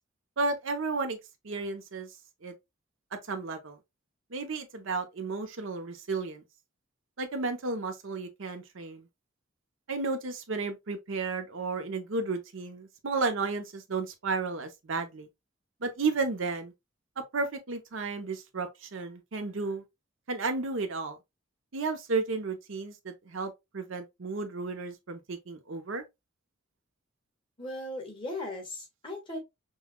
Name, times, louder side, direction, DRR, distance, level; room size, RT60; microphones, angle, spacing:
voice 1, 0.4-1.2 1.4-2.1 2.4-2.5 3.3-3.8 4.3-6.4 7.2-9.1 9.9-15.3 15.8-16.7 17.3-19.8 20.3-21.2 21.7-26.0, right 3 dB, 75° right, 0.7 m, -33 dB
voice 2, 27.6-29.4, left 1 dB, 25° left, 1.4 m, -37 dB
5.4 x 2.3 x 2.2 m
head